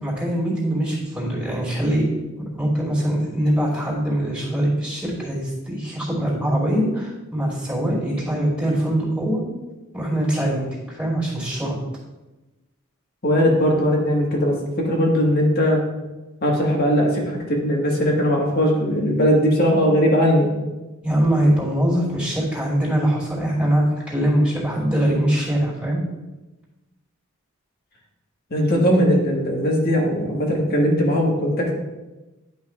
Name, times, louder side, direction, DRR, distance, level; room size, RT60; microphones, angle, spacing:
voice 1, 0.0-2.0 2.5-9.4 9.9-11.8 21.0-26.0, right 1 dB, 5° right, -6 dB, 2.6 m, -22 dB
voice 2, 13.2-15.8 16.4-20.5 28.5-31.7, equal, 50° left, -1 dB, 1.6 m, -19 dB
10.5 x 5.6 x 2.4 m, 1.1 s
head